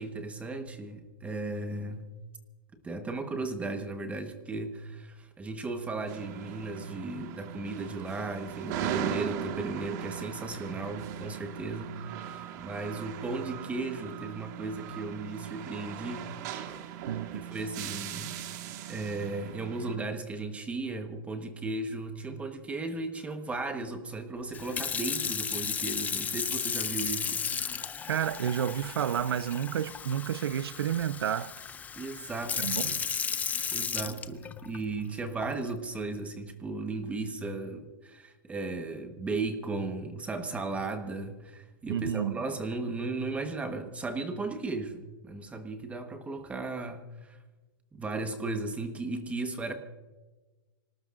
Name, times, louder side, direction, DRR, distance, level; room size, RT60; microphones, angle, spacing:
voice 1, 0.0-2.1 2.8-16.3 17.5-18.4 18.9-27.4 32.0-32.9 33.7-47.4 47.9-49.7, right 3 dB, 10° right, 1.3 m, -36 dB
sound 1, 6.1-20.0, right 9 dB, 45° right, 1.7 m, -39 dB
voice 2, 17.1-17.4 28.1-31.6 32.6-33.1 41.9-42.4, right 9 dB, 80° right, 0.6 m, -30 dB
Sink (filling or washing) / Fill (with liquid), 24.5-34.8 35.4-35.7, left 7 dB, 10° left, 0.5 m, -34 dB
26.0 x 18.5 x 2.5 m
hypercardioid pair, 140°, 13 cm